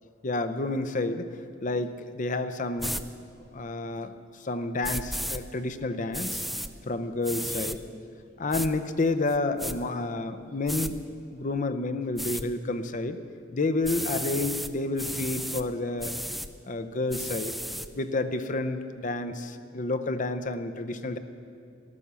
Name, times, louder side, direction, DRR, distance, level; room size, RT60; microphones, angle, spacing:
voice 1, 0.2-1.3 1.6-3.0 3.5-6.4 6.9-7.8 8.4-11.0 11.3-13.2 13.5-16.1 16.6-17.5 18.0-21.2, left 2 dB, 40° left, 10 dB, 0.7 m, -30 dB
sound 1, 2.8-3.0 4.8-5.4 6.1-6.7 7.2-7.8 8.5-8.7 9.3-9.7 10.7-10.9 12.2-12.4 13.8-14.7 15.0-15.6 16.0-16.5 17.1-17.9, equal, ahead, 0.4 m, -33 dB
13.5 x 12.5 x 6.9 m, 2.4 s
head